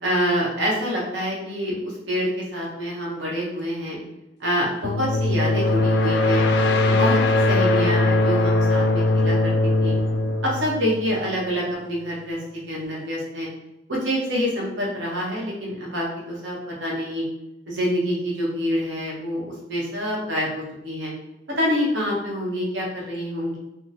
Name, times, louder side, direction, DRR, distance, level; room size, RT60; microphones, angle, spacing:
voice 1, 0.0-4.0 4.4-6.4 6.8-9.9 10.4-13.5 13.9-17.2 17.7-21.1 21.6-23.6, equal, 75° right, -3 dB, 1.0 m, -26 dB
sound 1, 4.8-11.5, left 2 dB, 65° left, 0.3 m, -20 dB
3.5 x 2.1 x 2.8 m, 0.91 s
head